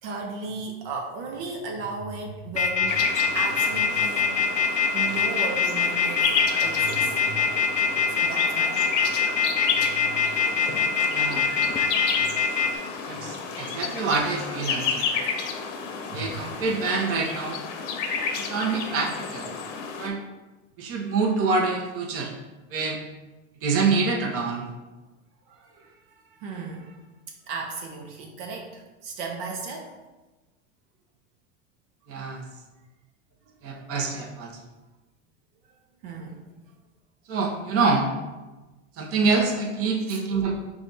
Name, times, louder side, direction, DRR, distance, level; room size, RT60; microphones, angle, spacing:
voice 1, 0.0-4.3 4.9-6.3 6.6-7.5 8.1-9.1 9.8-10.3 12.2-12.4 13.2-13.3 16.1-16.4 25.5-27.0 27.5-29.9 33.8-33.9 35.6-35.8 36.0-36.4 40.1-40.2, right 4 dB, 70° right, 1 dB, 0.8 m, -36 dB
sound 1, 2.5-12.7, left 7 dB, 20° left, 0.4 m, -23 dB
sound 2, 2.9-20.1, left 5 dB, 70° left, 0.7 m, -31 dB
voice 2, 11.1-11.5 13.1-15.0 16.1-17.6 18.3-19.5 20.0-20.2 20.8-22.3 22.7-23.0 23.6-24.7 32.1-32.4 33.6-34.5 37.3-38.1 39.0-40.5, right 4 dB, 40° right, 0 dB, 0.9 m, -26 dB
4.9 x 2.4 x 4.0 m, 1.1 s
supercardioid pair, 115°, 37 cm